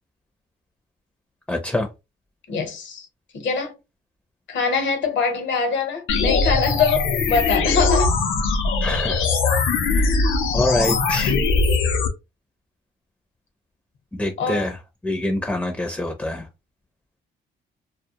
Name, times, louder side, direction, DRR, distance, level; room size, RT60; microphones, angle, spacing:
voice 1, 1.5-1.9 8.8-9.3 9.9-10.2 10.5-11.4 14.2-14.8 15.0-16.5, left 2 dB, 5° left, 0.5 m, -25 dB
voice 2, 2.5-3.1 3.3-3.7 4.5-8.2 14.4-14.7, left 5 dB, 65° left, 0.9 m, -23 dB
sound 1, 6.1-12.1, left 4 dB, 85° left, 0.6 m, -20 dB
2.2 x 2.1 x 2.8 m
cardioid pair, 90°, 20 cm